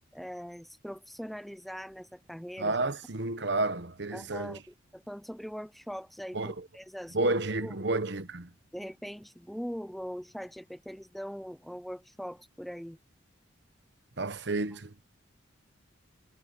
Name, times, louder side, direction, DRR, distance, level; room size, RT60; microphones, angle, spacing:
voice 1, 0.1-2.8 4.1-7.3 7.6-7.7 8.7-13.0, equal, ahead, 0.6 m, -41 dB
voice 2, 2.6-4.6 6.3-6.6 7.1-8.5 14.2-15.0, right 2 dB, 60° right, 1.2 m, -31 dB
head